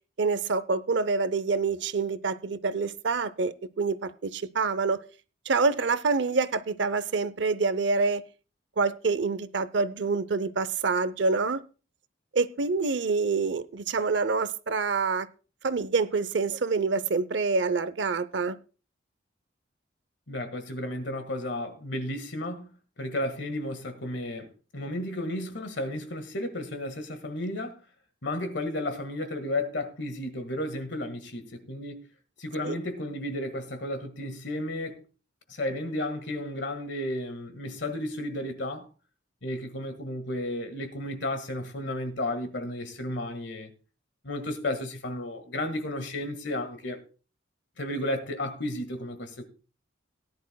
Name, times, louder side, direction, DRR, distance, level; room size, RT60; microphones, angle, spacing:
voice 1, 0.2-5.0 5.5-8.2 8.8-11.6 12.3-15.3 15.6-18.6 32.6-32.8, right 4 dB, 65° right, 0.6 m, -26 dB
voice 2, 20.3-22.7 23.0-27.8 28.2-32.0 32.4-35.0 35.5-38.9 39.4-43.7 44.2-47.0 47.8-49.5, left 1 dB, 65° left, 1.7 m, -33 dB
18.0 x 10.5 x 2.2 m
head